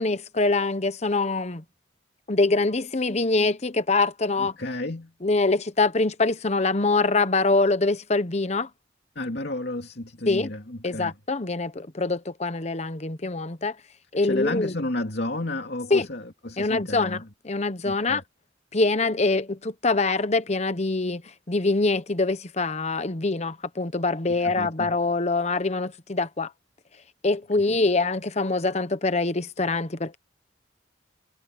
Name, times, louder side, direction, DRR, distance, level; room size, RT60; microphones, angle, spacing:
voice 1, 0.0-1.6 2.3-4.5 5.2-8.7 10.3-10.5 10.8-13.8 14.1-14.7 15.9-16.1 16.6-18.2 18.7-26.5 27.2-30.2, left 3 dB, 35° left, 1.0 m, -24 dB
voice 2, 4.4-5.1 9.1-11.1 14.2-17.2 17.8-18.2 24.4-24.9, left 2 dB, 60° left, 2.7 m, -32 dB
head